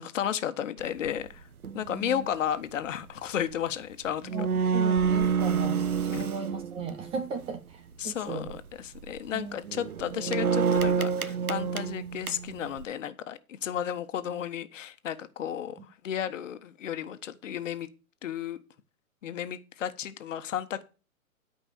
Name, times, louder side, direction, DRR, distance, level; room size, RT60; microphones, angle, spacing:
voice 1, 0.0-1.4 1.7-4.5 6.1-6.3 8.0-15.8 16.0-17.9 18.2-18.6 19.2-20.8, left 9 dB, 60° left, 1.4 m, -33 dB
sound 1, 0.8-1.1 1.6-1.9 3.8-3.9 4.1-7.4 8.3-8.6 9.0-9.2 9.6-12.8, right 6 dB, 85° right, 1.1 m, -28 dB
voice 2, 1.8-2.3 4.3-8.5 9.3-9.6 15.8-15.9, right 5 dB, 15° right, 0.6 m, -37 dB
12.5 x 5.3 x 6.7 m
hypercardioid pair, 125°, 43 cm